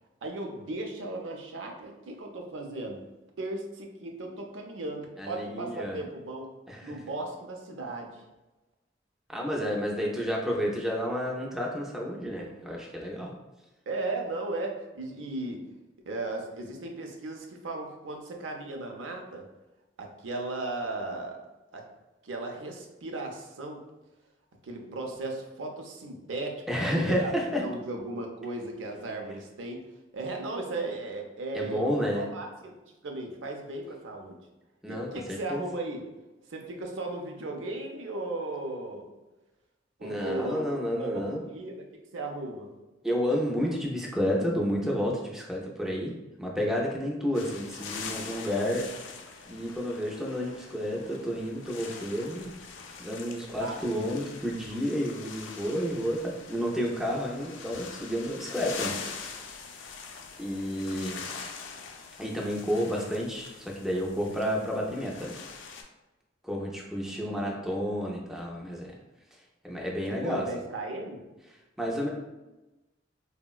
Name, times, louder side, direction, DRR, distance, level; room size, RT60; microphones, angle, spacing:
voice 1, 0.2-3.0 3.4-6.5 6.8-8.2 13.9-15.7 16.1-19.5 20.0-21.4 21.7-21.9 22.2-23.8 24.6-27.3 27.6-29.8 30.1-32.8 33.0-34.4 34.9-36.1 36.5-39.1 40.0-42.7 53.6-54.2 67.1-67.6 70.1-71.2, right 2 dB, 80° right, 2 dB, 0.5 m, -36 dB
voice 2, 5.2-6.0 6.7-6.9 9.3-13.3 26.7-27.6 31.5-32.2 34.8-35.1 35.5-35.6 40.0-41.4 43.0-48.8 49.5-52.5 53.0-58.9 60.4-61.2 62.2-65.4 66.4-68.9 69.6-70.4 71.8-72.1, equal, ahead, -3 dB, 0.4 m, -30 dB
sound 1, 47.3-65.8, left 5 dB, 85° left, 0.4 m, -43 dB
3.6 x 2.1 x 2.3 m, 1.1 s
head